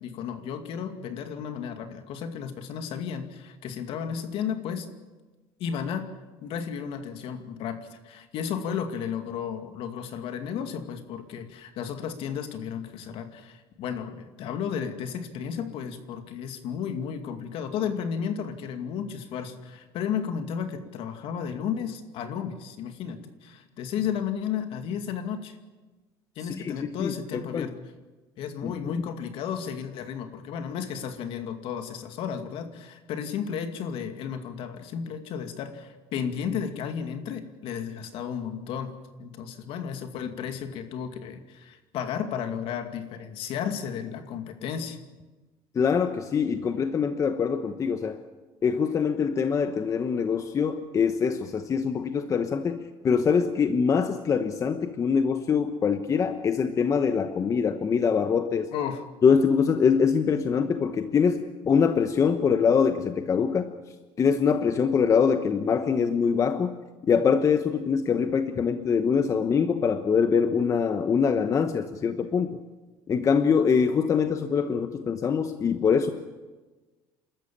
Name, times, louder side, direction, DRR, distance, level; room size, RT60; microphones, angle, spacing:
voice 1, 0.0-4.9 5.6-6.1 6.4-25.6 26.4-27.7 28.4-45.0 58.7-59.0, left 7 dB, 60° left, 7 dB, 2.4 m, -33 dB
voice 2, 27.0-27.7 28.6-29.0 45.7-48.2 48.6-58.7 59.2-63.7 64.2-66.8 67.0-72.6 73.1-76.1, left 6 dB, 30° left, 8 dB, 1.1 m, -24 dB
28.5 x 13.5 x 8.8 m, 1.2 s
cardioid pair, 130°, 10 cm